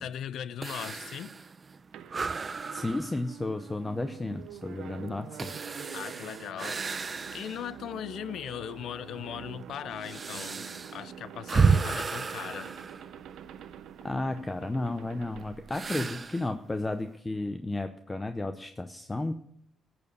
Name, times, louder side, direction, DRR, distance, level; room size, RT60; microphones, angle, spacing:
voice 1, 0.0-1.3 5.9-10.6 10.9-12.7, left 9 dB, 70° left, 0.5 m, -39 dB
sound 1, 0.6-7.8 8.3-8.4 9.1-13.7 15.7-16.5, right 5 dB, 35° right, 0.6 m, -32 dB
sound 2, 1.9-16.5, right 9 dB, 80° right, 0.6 m, -47 dB
voice 2, 2.7-6.0 14.0-19.3, left 2 dB, 20° left, 0.7 m, -33 dB
14.0 x 7.0 x 6.6 m
cardioid pair, 90°, 0 cm